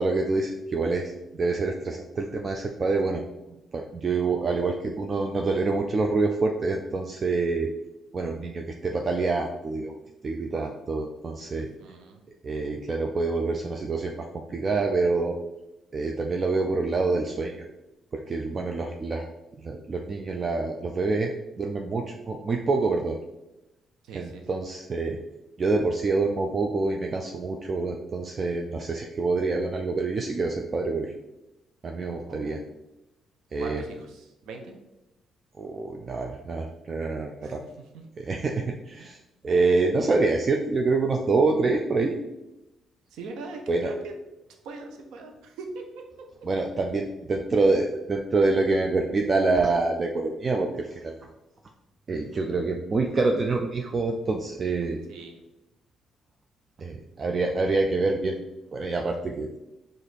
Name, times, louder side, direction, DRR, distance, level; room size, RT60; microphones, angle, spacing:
voice 1, 0.0-3.2 3.5-7.7 8.1-9.9 10.2-11.7 12.4-15.4 15.9-17.6 18.1-19.3 19.6-23.2 24.1-25.2 25.6-31.1 31.8-32.6 33.5-33.8 35.6-37.6 38.2-39.2 39.4-42.2 43.7-43.9 46.4-51.2 52.1-55.0 56.8-58.4 58.7-59.5, right 3 dB, 40° right, 2 dB, 0.4 m, -26 dB
voice 2, 11.5-12.2 24.0-24.5 32.2-32.7 33.6-34.7 37.4-37.5 37.9-38.0 39.0-39.1 43.1-44.1 44.6-45.8 48.4-48.6 55.1-55.4, right 3 dB, 85° right, 4 dB, 0.7 m, -41 dB
4.9 x 2.5 x 4.1 m, 0.96 s
cardioid pair, 90°, 0 cm